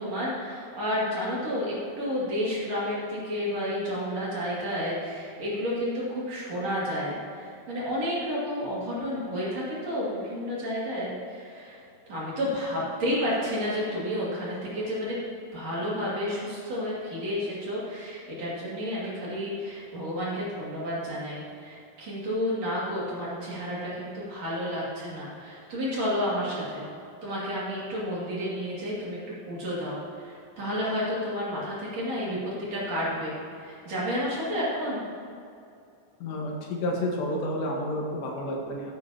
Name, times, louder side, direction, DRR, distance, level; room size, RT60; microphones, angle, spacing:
voice 1, 0.0-11.8 12.1-15.2 15.5-26.9 27.2-35.0, equal, 45° right, -7 dB, 3.2 m, -31 dB
voice 2, 36.2-38.9, left 1 dB, 85° left, -1 dB, 3.6 m, -30 dB
15.0 x 9.9 x 2.9 m, 2.5 s
omnidirectional pair, 4.8 m